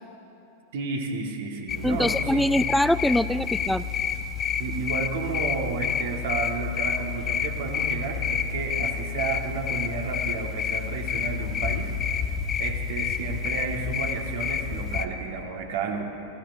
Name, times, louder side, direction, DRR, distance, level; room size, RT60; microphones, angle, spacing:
voice 1, 0.7-2.5 4.6-11.9 12.2-12.3 12.6-16.0, right 4 dB, 55° right, 2 dB, 1.8 m, -32 dB
sound 1, 1.7-15.1, left 7 dB, 30° left, 0.8 m, -29 dB
voice 2, 1.8-3.9, left 1 dB, 5° left, 15 dB, 0.3 m, -23 dB
28.0 x 15.5 x 2.7 m, 2.9 s
figure-of-eight pair, 90°, 0 cm